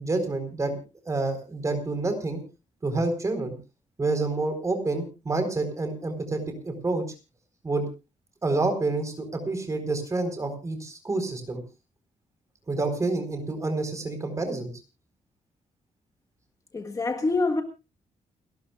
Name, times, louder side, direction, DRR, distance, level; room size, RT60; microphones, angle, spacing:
voice 1, 0.0-2.4 2.8-3.5 4.0-7.0 7.6-7.8 8.4-11.6 12.7-14.7, right 3 dB, 25° right, 4.3 m, -28 dB
voice 2, 16.7-17.6, left 3 dB, 25° left, 1.5 m, -25 dB
29.5 x 13.0 x 2.4 m
wide cardioid pair, 150°, 13 cm